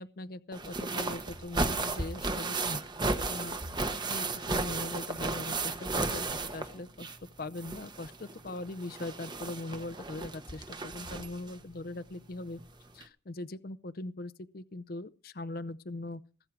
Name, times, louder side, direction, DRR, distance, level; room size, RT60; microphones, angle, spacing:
voice 1, 0.0-2.8 3.3-3.6 3.8-7.1 7.4-12.6 12.9-16.2, left 2 dB, 50° left, 0.6 m, -41 dB
sound 1, 0.5-7.3 7.6-11.5 12.6-12.7 13.0-13.1, right 3 dB, 25° right, 1.0 m, -34 dB
19.0 x 8.9 x 4.7 m
head